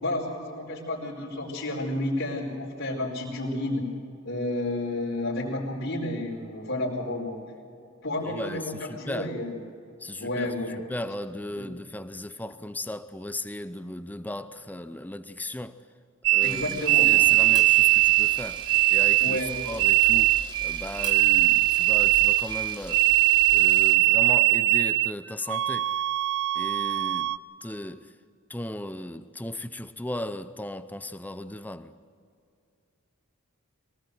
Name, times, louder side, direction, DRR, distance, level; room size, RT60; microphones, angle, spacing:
voice 1, 0.0-3.8 4.2-7.4 8.0-9.5 10.2-10.8 11.6-11.7 16.4-17.1 19.2-19.5, left 1 dB, 60° left, 5.0 m, -31 dB
voice 2, 8.2-9.4 10.0-15.8 16.3-23.1 23.5-26.0 26.6-28.2 28.5-31.9, left 1 dB, 10° left, 0.6 m, -37 dB
sound 1, 16.2-25.1 25.5-27.4, right 20 dB, 60° right, 0.5 m, -21 dB
Camera, 16.4-24.0, right 2 dB, 20° right, 2.0 m, -41 dB
23.5 x 19.0 x 7.9 m
head